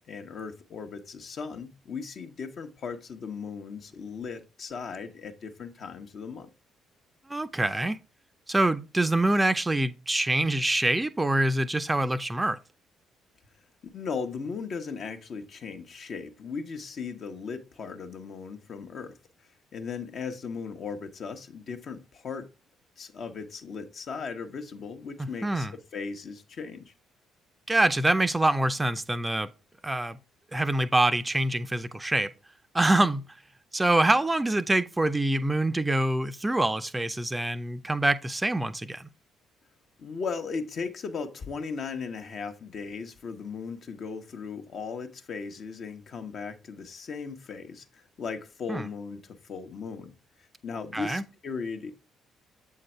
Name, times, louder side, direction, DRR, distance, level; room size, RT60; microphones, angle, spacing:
voice 1, 0.1-6.5 13.9-19.1 19.7-22.5 23.0-26.9 40.0-50.1 50.6-51.9, left 5 dB, 55° left, 1.0 m, -37 dB
voice 2, 7.3-8.0 8.5-12.6 25.2-25.7 27.7-29.5 29.8-30.2 30.5-32.3 32.7-33.2 33.7-39.1 48.7-48.9 50.9-51.2, right 1 dB, 15° right, 0.6 m, -25 dB
7.7 x 3.8 x 4.4 m
hypercardioid pair, 45°, 0 cm